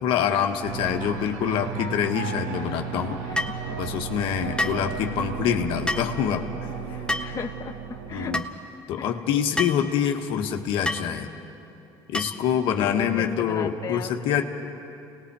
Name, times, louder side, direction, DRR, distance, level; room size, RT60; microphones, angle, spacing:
voice 1, 0.0-3.2 3.8-6.4 6.9-7.0 8.1-8.5 8.9-11.3 12.1-14.4, left 8 dB, 70° left, 4 dB, 1.4 m, -25 dB
sound 1, 0.6-8.4, right 7 dB, 85° right, 1.3 m, -34 dB
voice 2, 3.2-3.8 4.2-4.8 7.2-7.8 8.1-8.3 9.0-9.1 12.8-14.1, left 6 dB, 40° left, 3 dB, 1.0 m, -37 dB
sound 2, 3.4-3.6 4.6-4.8 5.9-6.1 7.1-7.4 8.3-8.5 9.6-9.8 10.9-11.1 12.1-12.5, left 1 dB, 10° left, 1.2 m, -28 dB
29.5 x 19.5 x 4.8 m, 2.9 s
supercardioid pair, 80°, 9 cm